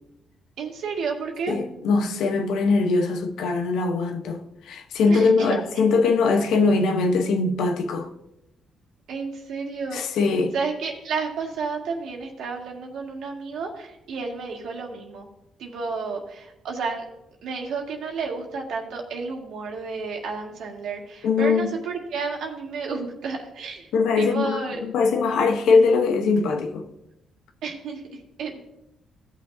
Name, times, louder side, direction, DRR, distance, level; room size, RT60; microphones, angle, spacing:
voice 1, 0.6-1.5 5.1-5.6 9.1-10.2 10.5-15.3 15.6-17.0 17.4-23.9 24.2-24.8 27.6-28.6, right 4 dB, 75° right, 2.0 m, -31 dB
voice 2, 1.5-8.1 9.9-10.5 21.2-21.7 23.9-26.9, left 4 dB, 80° left, 1.0 m, -21 dB
16.0 x 6.2 x 2.7 m
cardioid pair, 90°, 0 cm